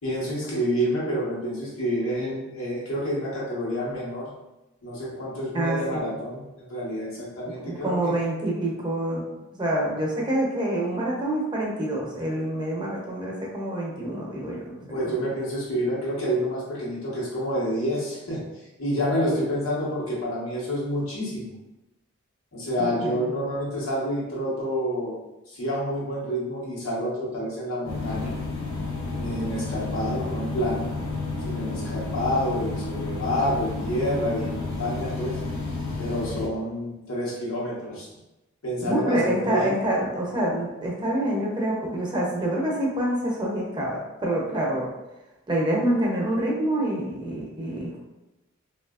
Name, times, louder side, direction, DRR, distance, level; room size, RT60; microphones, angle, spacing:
voice 1, 0.0-4.3 4.8-8.1 14.9-18.4 18.8-21.5 22.5-25.2 25.5-28.3 29.2-30.9 31.4-35.4 36.0-38.1 38.6-39.7, equal, 85° left, -6 dB, 1.0 m, -28 dB
voice 2, 5.5-6.1 7.6-9.2 9.5-14.8 15.1-15.2 22.8-23.3 38.9-44.9 45.5-48.0, right 1 dB, 20° right, -4 dB, 0.6 m, -26 dB
sound 1, 27.8-36.5, left 3 dB, 70° left, 0.6 m, -31 dB
2.9 x 2.4 x 2.3 m, 0.98 s
head